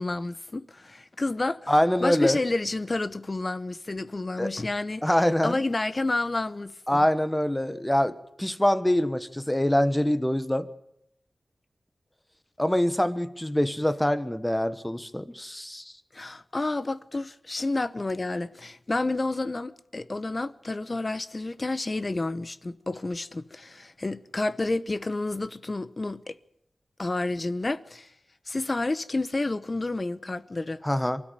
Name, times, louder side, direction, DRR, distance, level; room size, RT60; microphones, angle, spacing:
voice 1, 0.0-1.7 2.0-5.0 5.4-6.7 16.1-26.4 27.0-28.1 28.5-30.8, left 2 dB, 35° left, 0.9 m, -30 dB
voice 2, 1.7-2.4 4.4-4.5 5.0-5.6 6.9-10.7 12.6-15.9 30.8-31.2, left 1 dB, 10° left, 1.2 m, -24 dB
24.0 x 13.5 x 9.1 m
wide cardioid pair, 95°, 0 cm